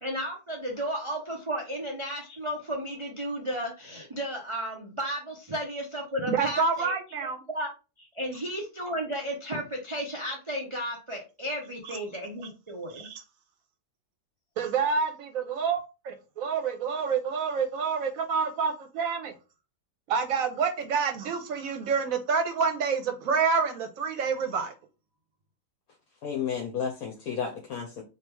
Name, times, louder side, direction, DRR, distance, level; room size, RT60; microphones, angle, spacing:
voice 1, 0.0-6.9 7.5-7.7 8.0-13.1, equal, 30° right, -1 dB, 0.6 m, -33 dB
voice 2, 6.3-7.4 12.9-13.2 14.6-19.3 20.1-24.7, right 5 dB, 65° right, 6 dB, 1.2 m, -28 dB
voice 3, 26.2-28.0, left 7 dB, 70° left, 1 dB, 1.2 m, -32 dB
3.5 x 2.9 x 4.5 m, 0.30 s
omnidirectional pair, 1.7 m